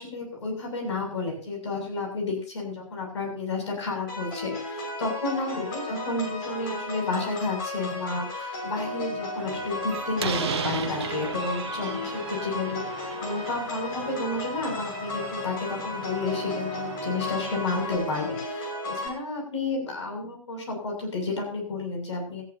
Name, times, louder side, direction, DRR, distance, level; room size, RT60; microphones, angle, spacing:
voice 1, 0.0-22.4, left 3 dB, 55° left, 1 dB, 7.4 m, -31 dB
sound 1, 4.1-19.1, left 2 dB, 40° left, 5.9 m, -34 dB
Slam, 9.4-18.0, right 7 dB, 50° right, 1.2 m, -37 dB
18.5 x 14.0 x 2.9 m, 0.40 s
figure-of-eight pair, 130°, 18 cm